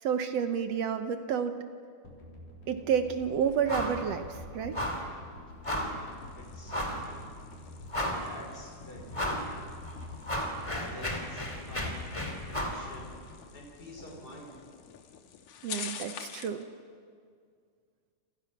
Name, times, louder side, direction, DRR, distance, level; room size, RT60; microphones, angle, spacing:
voice 1, 0.0-1.6 2.7-4.8 15.6-16.6, right 7 dB, 65° right, 8 dB, 1.8 m, -30 dB
sound 1, 2.0-14.4 14.7-14.8, left 2 dB, 90° left, 5.6 m, -47 dB
sound 2, 3.7-4.0 4.3-4.4 4.7-5.1 5.6-6.0 6.7-7.1 7.5-7.6 7.9-8.4 9.1-9.5 9.9-12.8, equal, 10° left, 2.4 m, -33 dB
sound 3, 5.9-16.6, left 8 dB, 65° left, 2.5 m, -48 dB
voice 2, 6.3-7.2 8.2-9.5 10.6-12.1 12.5-13.2 13.5-14.5, left 1 dB, 30° left, 0 dB, 5.5 m, -47 dB
28.5 x 27.0 x 6.0 m, 2.1 s
omnidirectional pair, 3.6 m